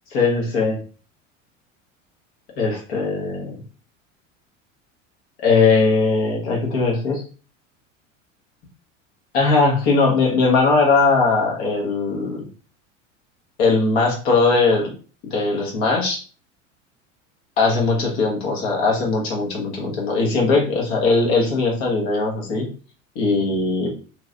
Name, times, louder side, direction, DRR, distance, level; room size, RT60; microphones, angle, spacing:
voice 1, 0.1-0.8 2.6-3.6 5.4-7.2 9.3-12.5 13.6-14.9 15.3-16.2 17.6-22.7 23.1-23.9, left 3 dB, 55° left, -1 dB, 1.4 m, -19 dB
3.3 x 3.0 x 2.5 m, 0.37 s
figure-of-eight pair, 80°, 38 cm